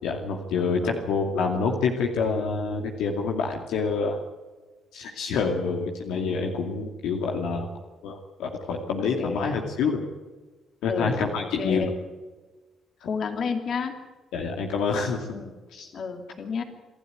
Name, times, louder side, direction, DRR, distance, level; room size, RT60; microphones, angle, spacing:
voice 1, 0.0-4.2 4.9-7.7 8.0-10.0 10.8-11.9 14.3-15.3 15.7-15.9, left 5 dB, 80° left, 1 dB, 2.3 m, -27 dB
voice 2, 9.2-9.5 10.9-11.9 13.0-14.0 15.3-15.6 15.9-16.6, left 5 dB, 60° left, 6 dB, 2.9 m, -31 dB
26.5 x 12.0 x 9.6 m, 1.3 s
supercardioid pair, 60°, 0 cm